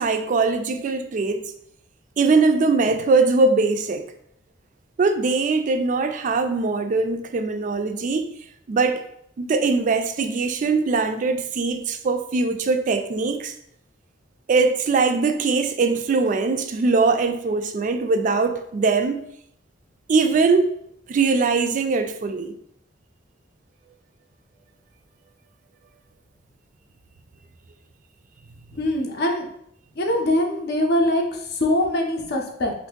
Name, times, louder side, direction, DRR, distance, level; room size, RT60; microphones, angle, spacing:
voice 1, 0.0-1.4 2.2-4.0 5.0-8.3 8.7-9.1 9.4-13.5 14.5-19.2 20.1-20.7 21.1-22.6, right 4 dB, 40° right, 7 dB, 0.3 m, -21 dB
voice 2, 28.7-29.5 30.0-32.7, left 1 dB, 55° left, 2 dB, 0.6 m, -23 dB
2.6 x 2.5 x 3.6 m, 0.71 s
head